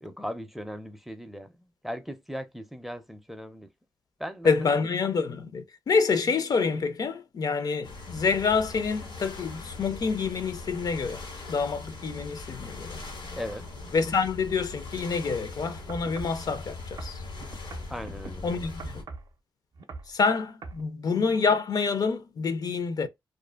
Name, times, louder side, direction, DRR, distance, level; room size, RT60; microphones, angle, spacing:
voice 1, 0.0-3.7 4.2-4.9 13.4-13.7 17.9-18.7, equal, 5° right, 0.4 m, -38 dB
voice 2, 4.4-11.2 11.5-13.0 13.9-17.2 18.4-19.0 20.1-23.1, left 5 dB, 55° left, 0.4 m, -27 dB
sound 1, 7.8-19.0, left 3 dB, 90° left, 1.3 m, -41 dB
sound 2, 15.9-16.4 17.0-18.3 18.8-19.3 19.8-20.1 20.6-20.8 21.5-21.6, right 4 dB, 65° right, 0.5 m, -41 dB
2.4 x 2.4 x 2.3 m
cardioid pair, 85°, 8 cm